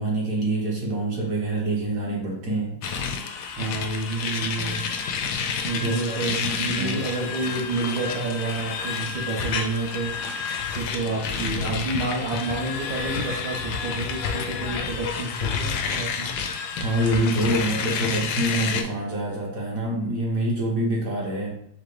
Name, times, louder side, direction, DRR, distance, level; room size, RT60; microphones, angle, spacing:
voice 1, 0.0-2.8 5.8-7.0 16.7-21.6, right 1 dB, 50° right, -2 dB, 1.3 m, -26 dB
sound 1, 2.8-18.8, left 6 dB, 75° left, 0.9 m, -29 dB
voice 2, 3.6-4.8 5.6-10.2 10.7-16.4, right 3 dB, 70° right, -1 dB, 1.6 m, -29 dB
5.7 x 2.1 x 3.2 m, 0.67 s
omnidirectional pair, 2.1 m